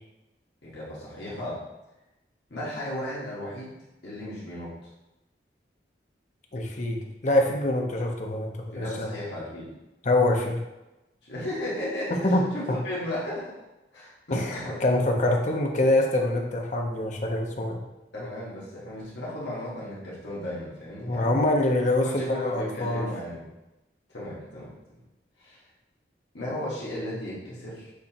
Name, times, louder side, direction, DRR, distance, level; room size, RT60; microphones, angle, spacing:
voice 1, 0.6-1.6 2.5-3.7 4.0-4.7 8.7-9.7 11.2-13.5 13.9-14.8 18.1-21.4 22.0-23.4 24.1-24.7 25.4-25.6 26.3-27.9, left 1 dB, 65° left, -7 dB, 1.4 m, -35 dB
voice 2, 6.5-9.1 10.0-10.6 12.2-12.8 14.3-17.8 21.1-23.1, left 1 dB, 40° left, 1 dB, 0.6 m, -25 dB
6.5 x 2.9 x 2.8 m, 0.99 s
head